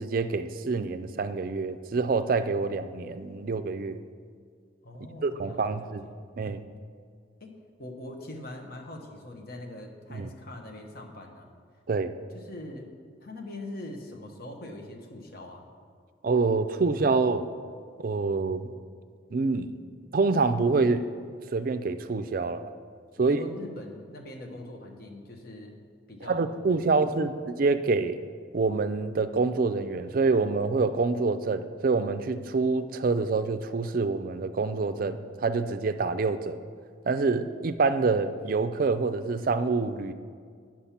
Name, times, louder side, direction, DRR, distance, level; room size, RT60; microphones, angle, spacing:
voice 1, 0.0-4.0 5.2-6.1 6.4-6.6 10.1-10.3 11.9-12.1 16.2-17.5 18.0-18.7 19.3-19.8 20.1-21.0 21.5-22.7 23.2-23.4 26.3-28.2 28.5-36.6 37.1-40.1, right 4 dB, 50° right, 10 dB, 0.4 m, -26 dB
voice 2, 4.8-6.2 7.4-7.5 7.8-11.5 12.3-12.9 13.2-15.7 23.2-25.8 26.1-26.9 27.2-27.3, left 1 dB, 50° left, 2 dB, 1.0 m, -42 dB
8.4 x 6.0 x 5.8 m, 2.1 s
head